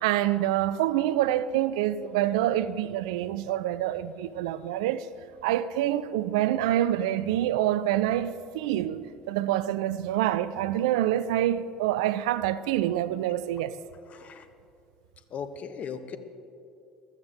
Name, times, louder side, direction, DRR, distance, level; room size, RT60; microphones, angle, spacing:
voice 1, 0.0-5.1 5.4-13.8, right 12 dB, 70° right, 0.5 m, -26 dB
voice 2, 14.1-14.4 15.3-16.2, left 6 dB, 45° left, 1.1 m, -37 dB
15.5 x 13.5 x 4.5 m
hypercardioid pair, 65°, 3 cm